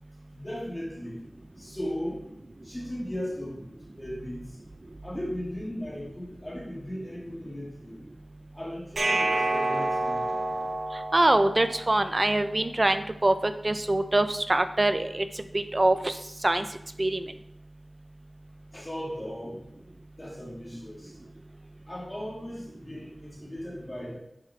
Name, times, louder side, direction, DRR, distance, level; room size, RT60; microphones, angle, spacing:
voice 1, 0.3-1.2 1.6-2.3 2.6-3.6 4.0-4.5 5.0-8.0 8.5-10.3 18.7-19.6 20.2-21.1 21.9-24.2, equal, 20° left, -3 dB, 2.1 m, -37 dB
sound 1, 9.0-12.0, right 2 dB, 80° right, 1.5 m, -28 dB
voice 2, 11.1-15.2 15.5-16.1 16.4-16.7 17.0-17.2, right 2 dB, 35° right, 9 dB, 0.8 m, -24 dB
10.5 x 7.4 x 3.4 m, 0.84 s
wide cardioid pair, 65°, 0 cm